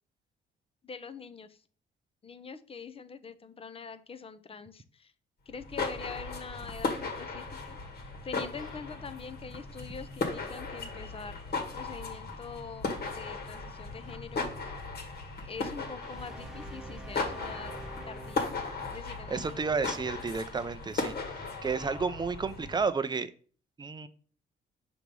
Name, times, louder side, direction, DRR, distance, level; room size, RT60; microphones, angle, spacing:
voice 1, 0.8-1.6 2.2-5.1 5.5-12.9 13.1-14.4 15.4-17.7 18.1-18.5 18.8-19.9, left 5 dB, 30° left, 12 dB, 0.6 m, -44 dB
sound 1, 5.5-22.9, left 3 dB, 55° left, 1.6 m, -37 dB
sound 2, 16.0-19.2, right 2 dB, ahead, 0.9 m, -46 dB
voice 2, 19.3-23.3 23.8-24.1, right 4 dB, 20° right, 11 dB, 0.5 m, -32 dB
5.9 x 3.0 x 5.3 m, 0.43 s
cardioid pair, 90°, 20 cm